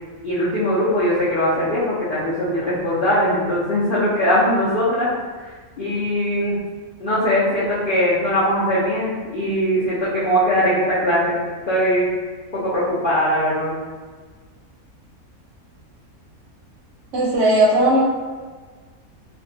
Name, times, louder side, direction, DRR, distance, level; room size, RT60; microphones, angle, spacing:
voice 1, 0.2-5.1 5.8-6.6 7.0-11.4 11.7-12.1 12.5-13.7, equal, 65° left, -10 dB, 0.5 m, -20 dB
voice 2, 17.1-18.0, right 1 dB, 70° right, -5 dB, 0.9 m, -16 dB
2.4 x 2.2 x 2.6 m, 1.5 s
omnidirectional pair, 1.6 m